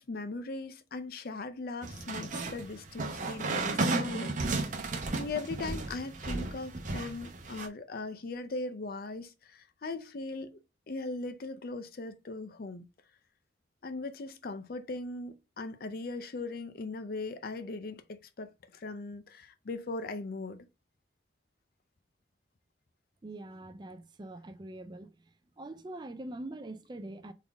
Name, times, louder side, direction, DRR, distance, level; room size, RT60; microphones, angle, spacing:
voice 1, 0.0-4.3 4.7-4.8 5.1-10.6 10.9-12.9 13.8-20.7, left 3 dB, 55° left, 0.5 m, -39 dB
sound 1, 1.8-7.7, right 3 dB, 45° right, 0.8 m, -34 dB
voice 2, 23.2-25.1 25.6-27.3, right 1 dB, 25° right, 0.4 m, -43 dB
4.1 x 3.6 x 3.4 m
head